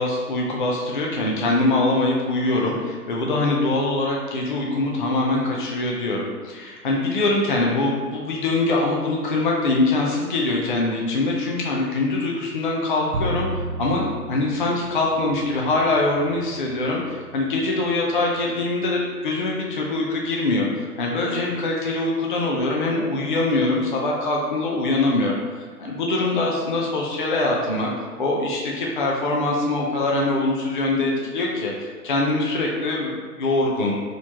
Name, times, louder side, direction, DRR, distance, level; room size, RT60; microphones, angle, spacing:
voice 1, 0.0-13.5 13.8-25.4 25.8-27.9 28.2-33.9, left 2 dB, 35° left, -2 dB, 0.4 m, -23 dB
Bowed string instrument, 13.1-19.3, right 2 dB, 50° right, 0.6 m, -34 dB
4.0 x 3.0 x 2.9 m, 1.5 s
figure-of-eight pair, 130°, 47 cm